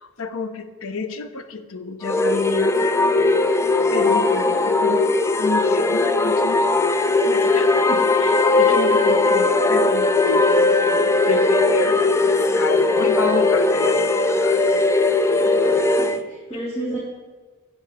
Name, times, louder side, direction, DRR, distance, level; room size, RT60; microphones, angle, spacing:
voice 1, 0.0-3.2 3.9-6.7 7.2-10.5 11.3-14.8, left 3 dB, 85° left, 10 dB, 0.8 m, -30 dB
sound 1, 2.0-16.2, left 3 dB, 15° left, 0.3 m, -18 dB
voice 2, 15.4-17.0, right 1 dB, 30° left, -8 dB, 2.7 m, -32 dB
12.0 x 9.7 x 3.7 m, 1.4 s
head